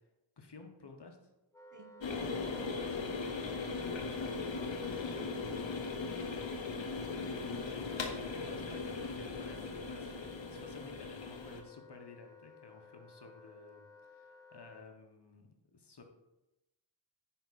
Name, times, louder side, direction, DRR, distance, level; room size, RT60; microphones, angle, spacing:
voice 1, 0.4-1.2 2.4-3.2 3.7-4.1 4.8-5.4 7.3-16.0, left 3 dB, 65° left, 4 dB, 1.3 m, -53 dB
Wind instrument woodwind instrument, 1.5-14.9, left 3 dB, 5° left, 1.2 m, -56 dB
sound 1, 2.0-11.6, left 4 dB, 90° left, 1.0 m, -39 dB
voice 2, 6.1-8.1, right 3 dB, 45° right, 4 dB, 1.4 m, -58 dB
10.0 x 4.8 x 4.2 m, 0.97 s
cardioid pair, 45°, 43 cm